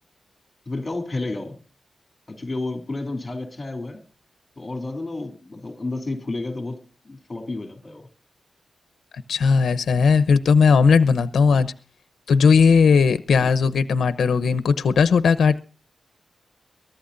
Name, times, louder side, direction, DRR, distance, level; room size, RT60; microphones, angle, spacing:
voice 1, 0.7-1.6 2.3-4.0 4.6-8.1 11.5-11.7 13.4-13.5, left 2 dB, 20° left, 3.1 m, -31 dB
voice 2, 9.3-11.7 12.3-15.6, left 5 dB, 90° left, 0.8 m, -17 dB
23.0 x 13.5 x 2.6 m
wide cardioid pair, 175°, 0 cm